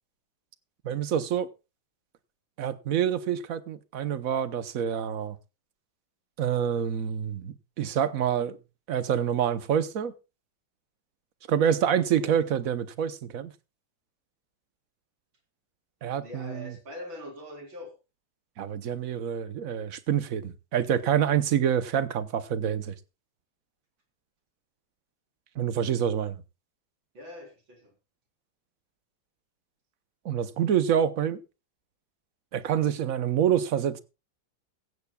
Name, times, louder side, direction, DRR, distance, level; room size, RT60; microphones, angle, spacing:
voice 1, 0.8-1.5 2.6-5.4 6.4-8.6 8.9-10.1 11.5-13.5 16.0-16.7 18.6-22.9 25.6-26.4 30.2-31.4 32.5-34.0, right 9 dB, 55° right, 1.1 m, -27 dB
voice 2, 16.2-17.9 27.1-27.9, left 1 dB, 80° right, 4.8 m, -42 dB
15.5 x 15.5 x 2.3 m
omnidirectional pair, 2.1 m